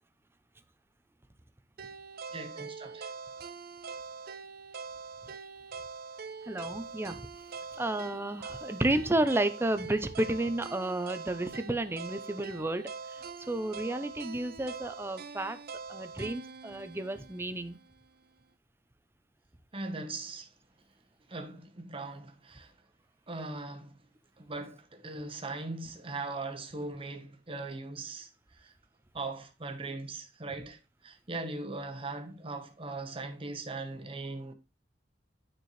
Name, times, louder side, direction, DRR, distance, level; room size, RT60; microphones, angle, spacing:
sound 1, 1.8-17.9, right 5 dB, 60° right, 0.6 m, -44 dB
voice 1, 2.3-3.1 19.7-20.5 21.3-22.7 23.3-24.0 24.4-28.3 28.6-28.7 29.1-34.5, right 3 dB, 30° right, 1.0 m, -39 dB
voice 2, 6.5-7.2 7.8-12.9 13.5-15.6 15.9-17.8, right 1 dB, 15° right, 0.6 m, -31 dB
9.3 x 4.5 x 3.1 m
head